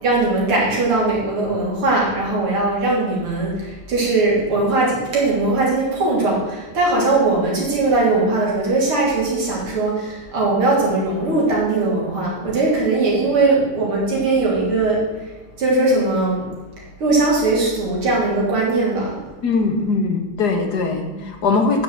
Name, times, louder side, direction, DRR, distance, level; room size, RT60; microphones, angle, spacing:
voice 1, 0.0-15.3 15.6-16.5 16.8-19.2 21.1-21.2, right 2 dB, 85° right, -4 dB, 4.1 m, -20 dB
voice 2, 19.4-21.8, left 4 dB, 55° left, 4 dB, 1.9 m, -20 dB
9.9 x 6.7 x 7.3 m, 1.2 s
omnidirectional pair, 2.3 m